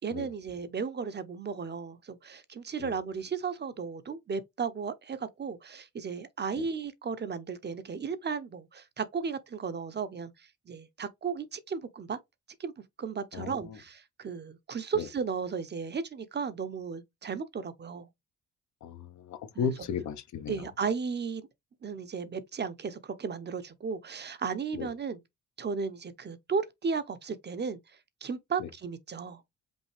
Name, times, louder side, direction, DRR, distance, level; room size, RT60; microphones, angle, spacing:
voice 1, 0.0-10.3 10.7-12.2 12.6-12.7 13.0-18.1 19.5-19.7 20.5-21.5 21.8-25.2 25.6-27.8 28.2-29.4, right 5 dB, 35° right, 0.7 m, -35 dB
voice 2, 13.3-13.8 14.9-15.1 18.8-20.6 24.7-24.9 28.6-28.7, left 6 dB, 70° left, 0.8 m, -35 dB
5.3 x 2.7 x 3.2 m
cardioid pair, 90°, 30 cm